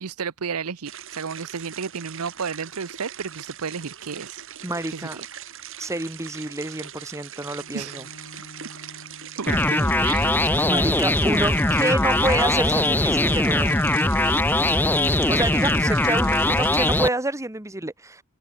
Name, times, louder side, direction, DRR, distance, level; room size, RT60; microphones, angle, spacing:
voice 1, 0.0-4.4 4.9-5.2 7.7-8.0 9.4-10.3, right 6 dB, 85° right, 0.8 m, -32 dB
sound 1, 0.8-17.0, right 9 dB, 65° right, 5.8 m, -40 dB
voice 2, 4.6-5.2 5.8-8.0 10.6-13.8 15.3-18.2, right 2 dB, 15° right, 1.3 m, -28 dB
Bowed string instrument, 7.4-12.7, left 1 dB, 65° left, 2.7 m, -51 dB
sound 2, 9.5-17.1, left 2 dB, 10° left, 0.6 m, -21 dB
head